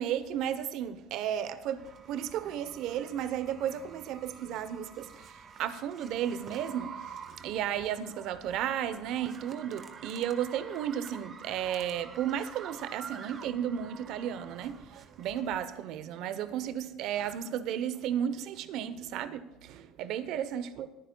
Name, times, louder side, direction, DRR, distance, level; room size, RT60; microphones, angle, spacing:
voice 1, 0.0-1.8 2.1-5.3 5.6-7.0 7.3-20.9, right 9 dB, 70° right, 0.8 m, -33 dB
sound 1, 1.8-15.6, right 6 dB, 45° right, 1.3 m, -48 dB
22.0 x 10.0 x 2.3 m
supercardioid pair, 85°, 0 cm